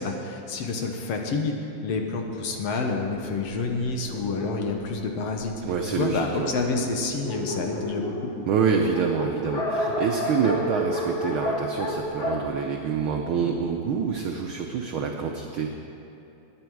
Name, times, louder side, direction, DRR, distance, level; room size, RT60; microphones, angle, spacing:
voice 1, 0.0-5.5 5.8-8.3, left 3 dB, 65° left, 3 dB, 2.0 m, -28 dB
Dog, 2.8-5.8 6.5-6.6 6.8-6.9 7.1-13.5, left 1 dB, 45° left, 2.1 m, -31 dB
voice 2, 5.6-6.5 8.5-15.7, right 6 dB, 85° right, 2 dB, 1.1 m, -26 dB
21.0 x 9.5 x 4.7 m, 3.0 s
omnidirectional pair, 3.3 m